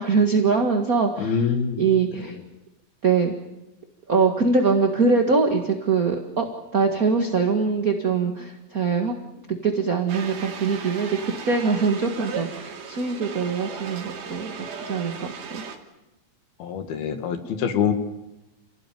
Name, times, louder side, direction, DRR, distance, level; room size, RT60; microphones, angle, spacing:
voice 1, 0.0-2.4 3.0-3.3 4.1-6.4 6.7-9.1 9.5-15.6, right 4 dB, 40° right, 3 dB, 1.3 m, -23 dB
voice 2, 1.2-1.8 16.6-17.9, left 7 dB, 85° left, 7 dB, 3.8 m, -24 dB
sound 1, 10.1-15.8, right 6 dB, 85° right, 4.4 m, -36 dB
28.5 x 17.5 x 9.2 m, 0.97 s
omnidirectional pair, 4.2 m